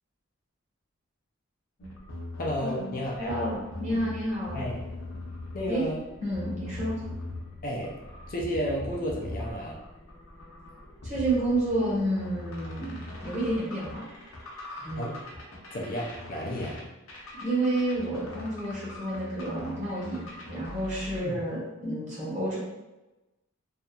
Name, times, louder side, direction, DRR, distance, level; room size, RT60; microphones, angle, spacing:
sound 1, 1.8-21.2, left 1 dB, 80° left, 0.6 m, -41 dB
voice 1, 2.4-3.4 4.5-4.8 5.5-6.0 7.6-8.0 8.3-9.8 15.0-15.2 15.7-16.8 21.1-21.4, equal, 40° left, -2 dB, 0.4 m, -32 dB
voice 2, 3.2-4.6 5.7-5.8 6.2-6.9 11.0-14.0 14.7-15.0 17.4-22.6, right 1 dB, 35° right, -7 dB, 1.1 m, -30 dB
2.7 x 2.4 x 2.2 m, 1.0 s
head